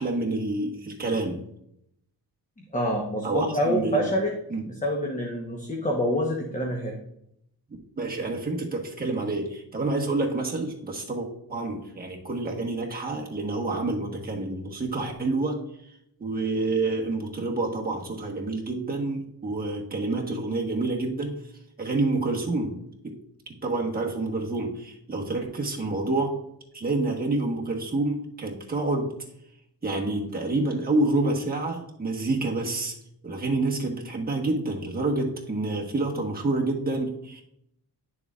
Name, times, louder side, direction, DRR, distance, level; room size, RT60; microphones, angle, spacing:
voice 1, 0.0-1.4 3.2-4.1 4.5-4.6 8.0-15.6 16.2-21.4 21.8-23.1 23.5-26.4 26.7-29.2 29.8-32.9 33.2-37.4, right 2 dB, 25° right, -1 dB, 1.3 m, -28 dB
voice 2, 2.7-4.3 4.7-7.0, equal, 20° left, 0 dB, 1.0 m, -26 dB
10.5 x 6.9 x 2.4 m, 0.76 s
wide cardioid pair, 145°, 39 cm